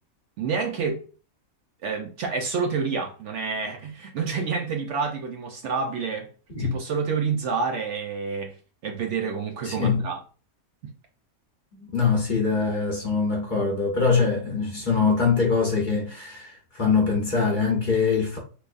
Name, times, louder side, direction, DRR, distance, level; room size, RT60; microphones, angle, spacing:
voice 1, 0.4-1.0 1.8-6.3 6.6-8.5 8.8-10.2 10.8-10.9, right 5 dB, 65° right, 0.8 m, -28 dB
voice 2, 9.6-10.0 11.7-18.4, left 5 dB, 40° left, 0.9 m, -23 dB
3.5 x 3.1 x 2.5 m
omnidirectional pair, 1.5 m